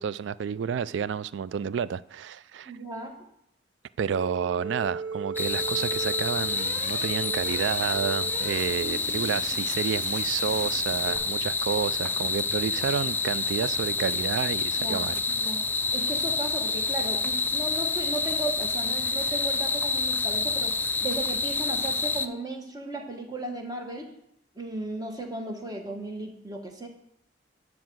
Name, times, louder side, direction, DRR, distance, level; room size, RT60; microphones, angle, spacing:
voice 1, 0.0-2.7 4.0-15.2, right 7 dB, 85° right, 0.3 m, -30 dB
voice 2, 2.6-3.1 8.8-9.6 14.8-15.6 15.9-24.1 24.5-26.9, right 2 dB, 20° right, 1.4 m, -36 dB
sound 1, 4.1-11.2, right 4 dB, 45° right, 2.5 m, -38 dB
sound 2, 5.4-22.3, left 4 dB, 10° left, 0.4 m, -28 dB
9.6 x 4.8 x 7.7 m
head